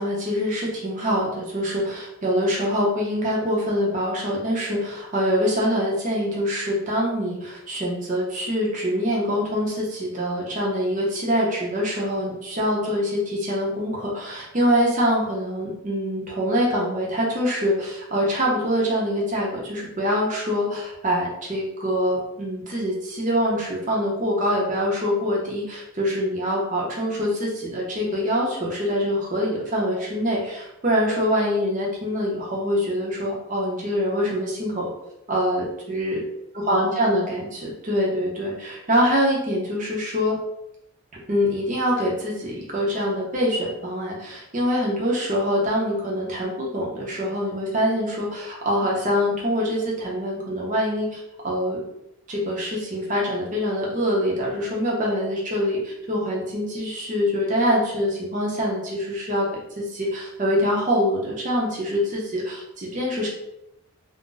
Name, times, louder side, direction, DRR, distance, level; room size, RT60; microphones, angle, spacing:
voice 1, 0.0-34.9 35.3-36.2 36.7-40.4 41.3-51.8 52.3-63.3, equal, 35° right, -3 dB, 0.6 m, -24 dB
2.5 x 2.1 x 3.8 m, 0.85 s
head